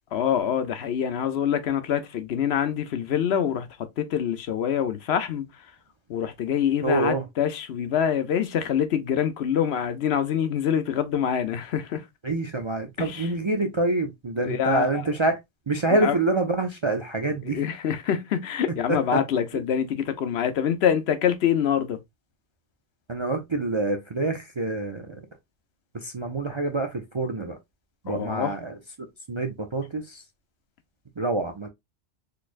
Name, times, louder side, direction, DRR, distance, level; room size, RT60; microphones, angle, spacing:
voice 1, 0.1-5.5 6.1-12.0 13.0-13.3 14.4-15.0 16.0-16.2 17.4-22.0 28.1-28.5, left 9 dB, 70° left, 0.9 m, -25 dB
voice 2, 6.8-7.2 12.2-15.4 15.7-17.6 18.9-19.2 23.1-25.2 25.9-27.6 28.0-28.8 29.3-30.2 31.2-31.7, right 2 dB, 40° right, 0.4 m, -26 dB
4.2 x 3.2 x 2.4 m
omnidirectional pair, 1.2 m